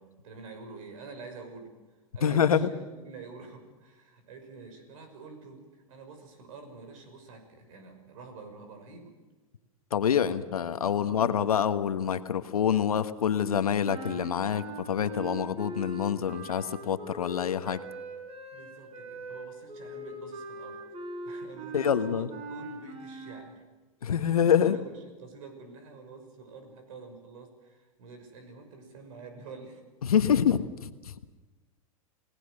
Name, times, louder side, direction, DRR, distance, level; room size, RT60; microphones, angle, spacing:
voice 1, 0.0-1.7 2.1-9.1 10.3-10.4 10.9-11.3 18.5-20.8 21.2-23.6 24.2-29.8 30.2-30.3, right 4 dB, 65° right, 7 dB, 6.1 m, -47 dB
voice 2, 2.2-2.7 9.9-17.8 21.7-22.3 24.0-24.8 30.0-31.1, left 8 dB, 85° left, 11 dB, 1.4 m, -26 dB
sound 1, 13.8-23.5, right 2 dB, 35° right, 5.9 m, -41 dB
29.5 x 18.0 x 6.6 m, 1.2 s
hypercardioid pair, 105°, 18 cm